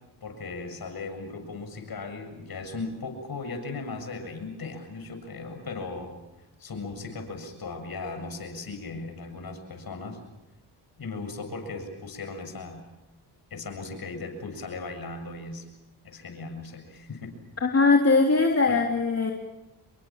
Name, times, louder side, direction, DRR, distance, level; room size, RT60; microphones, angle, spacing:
voice 1, 0.2-6.2 6.6-10.2 11.0-12.8 13.5-15.7 16.0-17.4 18.7-18.8, left 3 dB, 55° left, 6 dB, 7.5 m, -37 dB
voice 2, 17.6-19.3, left 3 dB, 35° left, 1 dB, 3.6 m, -21 dB
28.0 x 23.5 x 7.4 m, 0.95 s
supercardioid pair, 65°, 44 cm